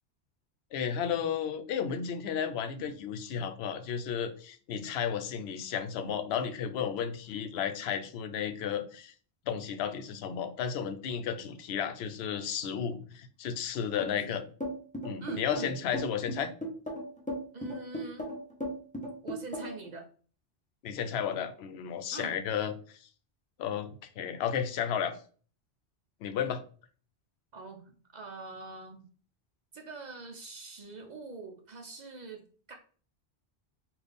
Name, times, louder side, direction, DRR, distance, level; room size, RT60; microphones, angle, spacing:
voice 1, 0.7-9.1 9.5-14.4 15.0-16.5 20.8-22.7 23.6-25.2 26.2-26.6, left 8 dB, 75° left, 7 dB, 0.8 m, -33 dB
voice 2, 14.0-14.4 15.2-15.8 17.5-18.3 19.2-20.1 22.1-22.4 27.5-29.0 29.7-32.7, right 3 dB, 50° right, 4 dB, 0.6 m, -44 dB
sound 1, 14.6-19.9, equal, 10° left, 0.8 m, -36 dB
4.0 x 2.5 x 3.4 m, 0.41 s
omnidirectional pair, 1.1 m